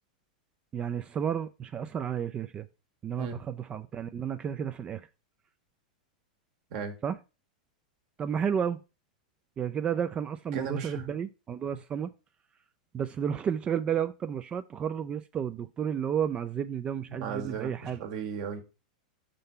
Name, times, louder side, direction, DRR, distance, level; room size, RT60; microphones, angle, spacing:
voice 1, 0.7-2.7 3.0-5.1 7.0-7.2 8.2-8.8 9.6-12.1 12.9-18.0, right 8 dB, 25° right, 0.3 m, -32 dB
voice 2, 10.5-11.1 17.1-18.6, right 6 dB, 55° right, 1.5 m, -36 dB
5.4 x 3.8 x 5.5 m
hypercardioid pair, 115°, 4 cm